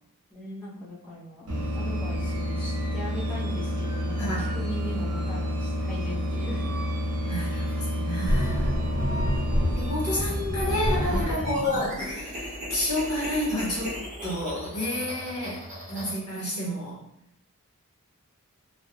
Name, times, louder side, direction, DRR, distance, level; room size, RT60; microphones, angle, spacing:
voice 1, 0.3-1.5 1.7-6.8 16.0-16.1 16.4-16.8, equal, 5° left, -9 dB, 0.7 m, -39 dB
sound 1, 1.5-11.2, left 1 dB, 70° right, 0.8 m, -29 dB
voice 2, 4.2-4.5 7.2-8.7 9.7-14.0 14.2-15.6 15.9-17.0, left 1 dB, 75° left, -5 dB, 1.2 m, -30 dB
sound 2, 8.3-9.9 10.6-16.1, equal, 35° right, 0.8 m, -30 dB
2.4 x 2.1 x 3.3 m, 0.76 s
head